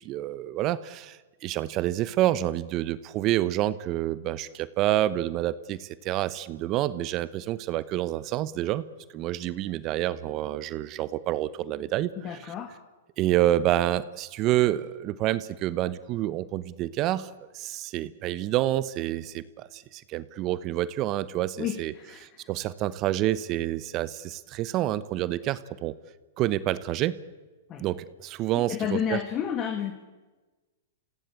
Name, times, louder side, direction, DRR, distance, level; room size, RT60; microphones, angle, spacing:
voice 1, 0.0-8.8 9.1-12.1 13.2-21.9 22.2-25.9 26.4-27.1 27.8-29.2, right 14 dB, 35° right, 16 dB, 0.9 m, -28 dB
voice 2, 12.2-12.8 21.6-22.5 27.7-27.8 28.5-29.9, left 9 dB, 30° left, 7 dB, 1.8 m, -31 dB
27.5 x 16.5 x 8.4 m, 1.3 s
hypercardioid pair, 135°, 0 cm